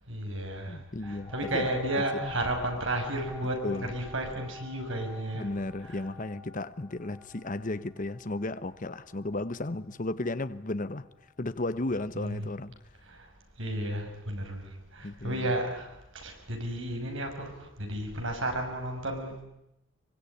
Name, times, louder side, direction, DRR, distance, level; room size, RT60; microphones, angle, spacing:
voice 1, 0.1-5.5 5.8-6.0 12.1-12.5 13.0-13.3 13.6-19.4, right 1 dB, 65° right, 6.3 m, -33 dB
voice 2, 0.7-1.7 2.1-2.3 3.6-3.9 5.3-11.1 11.4-12.7 15.0-15.5, left 2 dB, 40° left, 1.0 m, -34 dB
sound 1, 1.0-10.3 10.9-11.0, left 4 dB, 5° left, 2.0 m, -46 dB
24.0 x 23.5 x 9.9 m
head